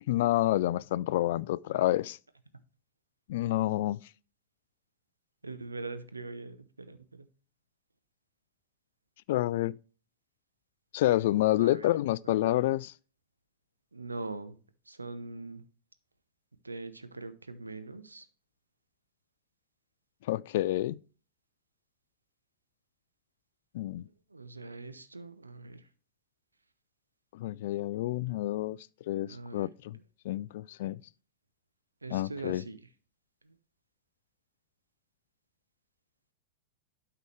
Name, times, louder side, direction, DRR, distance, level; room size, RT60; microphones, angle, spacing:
voice 1, 0.1-2.2 3.3-4.0 9.3-9.7 10.9-12.9 20.3-21.0 23.7-24.1 27.3-28.8 29.1-30.0 30.2-31.0 32.1-32.6, left 15 dB, 55° left, 0.3 m, -28 dB
voice 2, 5.4-7.3 11.6-11.9 12.3-12.4 13.9-14.6 14.9-15.6 16.6-18.3 24.3-25.8 29.3-29.7 32.0-32.8 33.5-33.6, right 3 dB, 80° right, 0.9 m, -42 dB
12.0 x 4.8 x 3.2 m
figure-of-eight pair, 90°, 0 cm